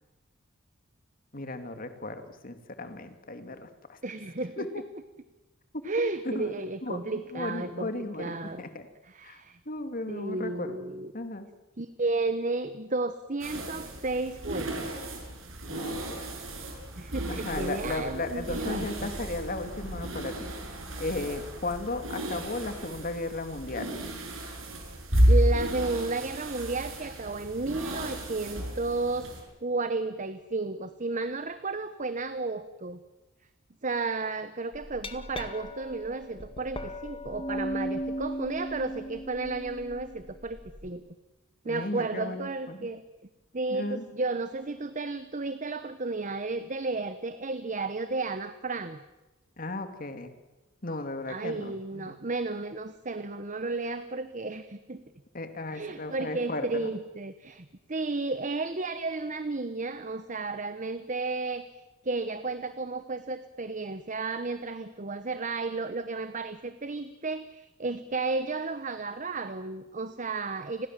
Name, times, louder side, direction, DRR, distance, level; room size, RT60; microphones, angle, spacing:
voice 1, 1.3-4.0 4.6-4.8 5.7-5.8 6.2-6.5 6.8-8.9 9.2-9.4 9.7-10.8 11.1-11.4 15.7-16.2 17.3-20.5 21.0-23.9 41.6-42.9 43.7-44.1 49.6-50.3 50.8-52.2 55.3-56.9, left 2 dB, 45° left, 8 dB, 2.5 m, -35 dB
voice 2, 4.0-4.7 5.8-7.9 8.2-8.6 9.0-9.6 10.1-11.1 11.8-14.9 16.9-19.1 25.3-33.0 33.8-41.0 41.6-43.0 43.5-49.0 51.3-55.0 55.7-61.7 62.0-70.9, right 3 dB, 40° right, 11 dB, 1.0 m, -33 dB
sound 1, 13.4-29.4, equal, 75° right, 7.5 m, -32 dB
Glass, 34.7-40.9, equal, 25° left, 2.0 m, -37 dB
30.0 x 21.5 x 7.6 m, 1.1 s
head